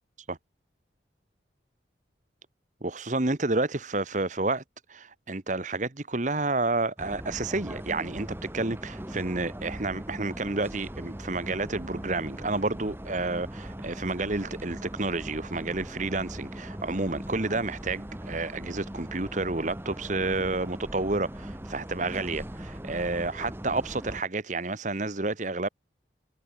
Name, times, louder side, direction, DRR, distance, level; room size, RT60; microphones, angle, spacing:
voice 1, 2.8-4.6 4.9-25.7, right 2 dB, 40° right, 1.2 m, -30 dB
sound 1, 7.0-24.2, right 1 dB, 10° right, 1.1 m, -40 dB
head